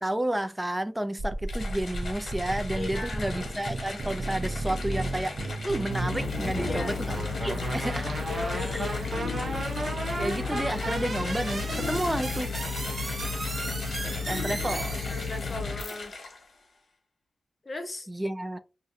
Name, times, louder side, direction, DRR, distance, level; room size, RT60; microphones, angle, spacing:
voice 1, 0.0-8.1 8.7-8.8 10.2-12.5 14.3-15.0 18.1-18.6, right 1 dB, 10° right, 0.4 m, -31 dB
sound 1, 1.2-15.6, right 2 dB, 50° right, 0.6 m, -34 dB
sound 2, 1.5-16.6, left 3 dB, 65° left, 1.1 m, -40 dB
voice 2, 2.8-3.3 6.7-6.9 8.3-8.9 15.1-16.1 17.7-18.1, left 2 dB, 30° left, 0.6 m, -37 dB
sound 3, 5.9-15.9, left 5 dB, 80° left, 0.4 m, -33 dB
2.6 x 2.4 x 3.9 m
wide cardioid pair, 115°, 0 cm